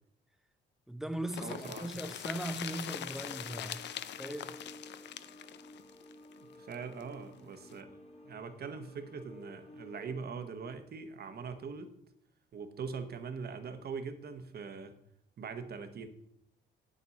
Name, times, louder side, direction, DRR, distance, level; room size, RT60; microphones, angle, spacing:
voice 1, 0.9-3.8 4.1-4.6, right 1 dB, ahead, 0.7 m, -39 dB
sound 1, 1.3-7.0 7.3-7.4 7.7-7.8, left 10 dB, 60° left, 0.5 m, -42 dB
voice 2, 1.4-1.9 6.6-7.9 8.3-11.9 12.5-14.9 15.4-16.1, right 5 dB, 55° right, 1.1 m, -42 dB
sound 2, 2.9-10.2, left 1 dB, 30° left, 1.4 m, -53 dB
8.1 x 7.4 x 4.1 m
cardioid pair, 90°, 20 cm